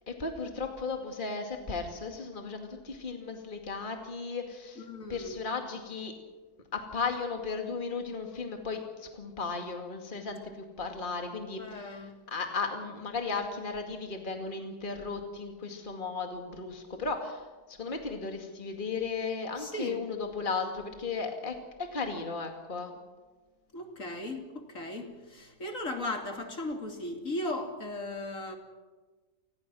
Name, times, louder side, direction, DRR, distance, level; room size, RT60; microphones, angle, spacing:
voice 1, 0.1-6.1 6.7-23.0, left 4 dB, 30° left, 3 dB, 2.4 m, -35 dB
voice 2, 4.8-5.4 11.6-12.1 19.6-20.0 23.7-28.6, left 1 dB, 55° left, 4 dB, 3.1 m, -37 dB
30.0 x 20.0 x 6.3 m, 1.3 s
omnidirectional pair, 1.7 m